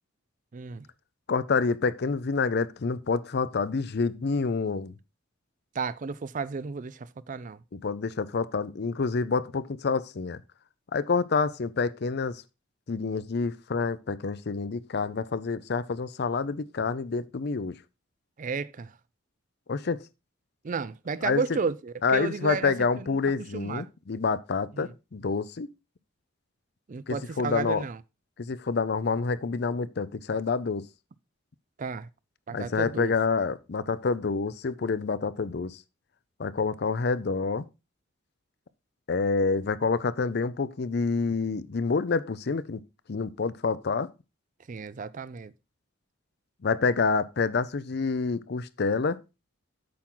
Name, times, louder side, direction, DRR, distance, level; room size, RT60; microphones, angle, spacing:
voice 1, 0.5-0.8 5.8-7.6 18.4-18.9 20.6-23.2 23.5-23.9 24.7-24.9 26.9-28.0 31.8-32.1 32.5-33.1 44.7-45.5, right 5 dB, 40° right, 0.4 m, -33 dB
voice 2, 1.3-4.9 7.7-10.4 10.9-12.4 12.9-17.8 19.7-20.0 21.2-21.4 22.0-25.7 27.1-27.8 28.4-30.8 32.5-35.8 36.4-37.6 39.1-42.8 43.1-44.1 46.6-49.2, left 4 dB, 60° left, 0.6 m, -28 dB
8.5 x 6.0 x 3.8 m
head